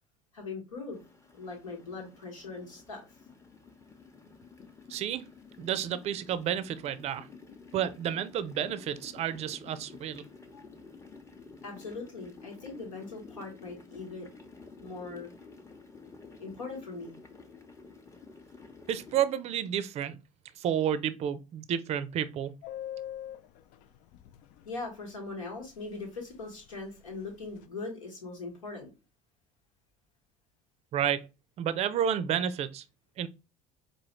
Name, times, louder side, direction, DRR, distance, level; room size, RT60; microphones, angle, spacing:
voice 1, 0.3-1.0 1.3-3.0 10.5-10.6 11.6-14.3 14.8-15.3 16.4-17.2 24.6-28.9, left 3 dB, 80° left, 1.4 m, -40 dB
sound 1, 0.9-19.3, left 4 dB, 15° left, 0.8 m, -51 dB
voice 2, 4.9-5.3 5.6-7.3 7.7-10.2 18.9-20.2 20.6-22.5 30.9-31.3 31.6-32.8 33.2-33.3, right 9 dB, 40° right, 0.5 m, -30 dB
Subway metro underground, 22.6-24.8 25.1-25.2 25.4-25.7 25.9-26.4 26.6-27.6, left 11 dB, 55° left, 0.4 m, -42 dB
4.8 x 2.5 x 3.0 m
figure-of-eight pair, 65°, 17 cm